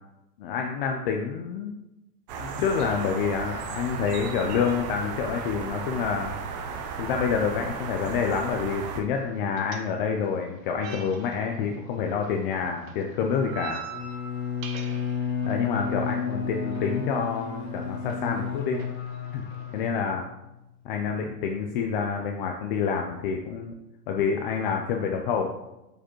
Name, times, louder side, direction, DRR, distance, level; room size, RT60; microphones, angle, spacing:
voice 1, 0.4-1.8 2.4-6.3 7.0-13.8 15.5-18.8 19.3-19.4 19.7-20.3 20.8-23.7 24.1-25.5, left 6 dB, 35° left, 2 dB, 0.4 m, -28 dB
sound 1, 2.3-9.0, right 5 dB, 30° right, 0.3 m, -35 dB
sound 2, 8.9-19.9, right 6 dB, 55° right, 1.0 m, -46 dB
Bowed string instrument, 13.9-20.5, left 6 dB, 60° left, 1.2 m, -32 dB
6.6 x 4.9 x 3.0 m, 0.93 s
supercardioid pair, 145°, 49 cm